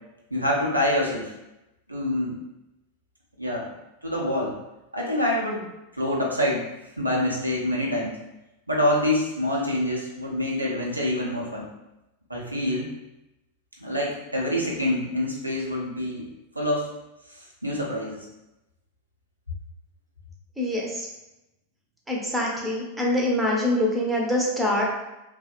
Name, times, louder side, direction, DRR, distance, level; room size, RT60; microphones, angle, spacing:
voice 1, 0.3-1.3 1.9-2.4 3.4-3.7 4.0-4.5 4.9-5.6 6.0-6.6 7.0-8.2 8.7-11.7 12.3-12.9 13.8-16.9 17.3-18.3, left 1 dB, 85° right, -4 dB, 0.5 m, -26 dB
voice 2, 20.6-21.1 22.1-24.8, left 1 dB, 5° right, -3 dB, 0.6 m, -24 dB
2.6 x 2.0 x 2.3 m, 0.94 s
figure-of-eight pair, 90°, 0 cm